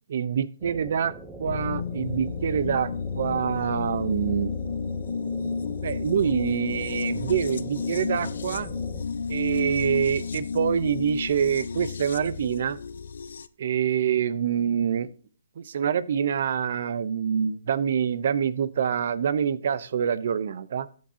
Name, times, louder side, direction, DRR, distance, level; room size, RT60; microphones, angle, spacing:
voice 1, 0.1-1.1 1.4-4.5 5.8-8.7 9.3-12.8 13.6-15.1 15.6-20.9, right 8 dB, 55° right, 16 dB, 0.8 m, -26 dB
sound 1, 0.6-9.0, right 2 dB, 5° right, 0.9 m, -43 dB
sound 2, 1.4-13.5, left 5 dB, 75° left, 0.7 m, -32 dB
14.0 x 7.6 x 2.9 m, 0.41 s
hypercardioid pair, 160°, 0 cm